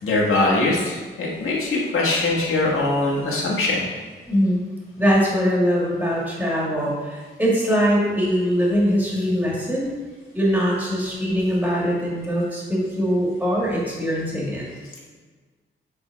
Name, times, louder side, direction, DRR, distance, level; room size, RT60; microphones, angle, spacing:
voice 1, 0.0-3.8, left 2 dB, 90° left, -4 dB, 1.7 m, -22 dB
voice 2, 4.3-4.6 5.0-9.9 10.3-14.6, equal, 10° right, -5 dB, 1.7 m, -22 dB
8.8 x 3.6 x 4.6 m, 1.4 s
wide cardioid pair, 160°, 21 cm